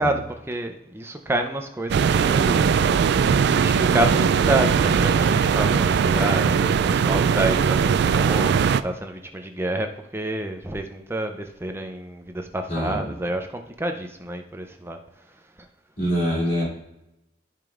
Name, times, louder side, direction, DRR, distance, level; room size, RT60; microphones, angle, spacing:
voice 1, 0.0-2.6 3.5-15.0, right 1 dB, 15° right, 4 dB, 0.6 m, -29 dB
sound 1, 1.9-8.8, right 6 dB, 60° right, 0.3 m, -20 dB
voice 2, 12.7-13.1 16.0-16.7, equal, 45° left, -5 dB, 3.1 m, -24 dB
14.0 x 5.2 x 2.5 m, 0.89 s
head